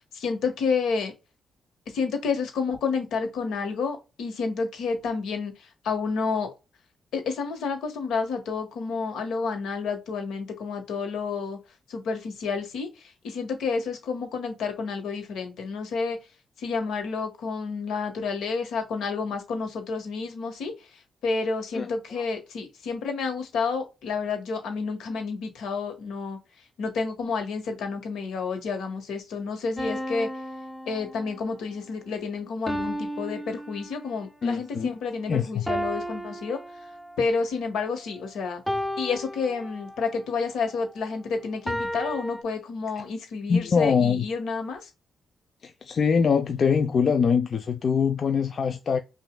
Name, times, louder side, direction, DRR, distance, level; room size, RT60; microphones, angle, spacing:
voice 1, 0.1-1.1 1.9-6.5 7.1-11.6 11.9-16.2 16.6-26.4 26.8-30.3 30.9-36.6 37.2-38.6 39.0-44.9, left 4 dB, 80° left, 1.3 m, -30 dB
sound 1, 29.8-31.6 32.7-34.3 35.7-37.3 38.7-40.2 41.7-42.4, equal, 5° left, 0.6 m, -33 dB
voice 2, 34.4-35.0 35.3-35.7 43.5-44.2 45.6-49.0, left 6 dB, 55° left, 0.5 m, -23 dB
5.6 x 2.6 x 2.2 m
supercardioid pair, 60°, 0 cm